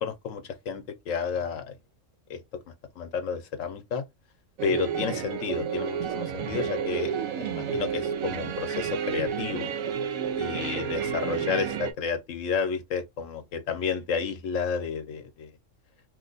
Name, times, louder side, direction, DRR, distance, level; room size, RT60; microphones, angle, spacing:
voice 1, 0.0-1.7 2.3-2.4 3.0-4.0 4.6-9.7 10.4-15.5, left 6 dB, 75° left, 1.0 m, -31 dB
sound 1, 4.6-11.9, right 7 dB, 90° right, 1.0 m, -30 dB
2.8 x 2.2 x 3.8 m
omnidirectional pair, 1.4 m